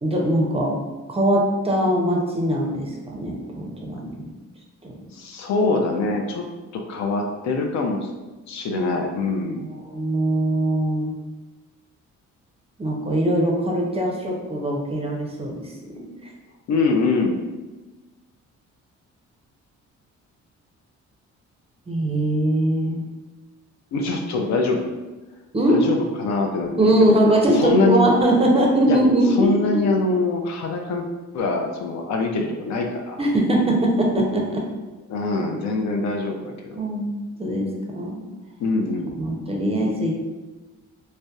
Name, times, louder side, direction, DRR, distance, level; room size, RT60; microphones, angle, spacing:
voice 1, 0.0-0.8 1.1-4.2 4.8-4.9 9.6-11.1 12.8-16.3 21.9-23.0 25.5-25.9 26.8-29.8 33.2-34.7 36.8-37.7 37.9-38.2 39.2-40.1, right 1 dB, 20° right, -1 dB, 0.5 m, -21 dB
voice 2, 5.1-6.5 6.7-8.1 8.5-9.6 16.7-17.4 23.9-25.0 25.7-27.1 27.5-28.0 28.9-29.0 29.4-31.0 31.3-33.2 35.1-36.8 38.6-39.2, left 3 dB, 65° left, 2 dB, 0.4 m, -24 dB
2.6 x 2.1 x 2.2 m, 1.2 s
cardioid pair, 90°, 30 cm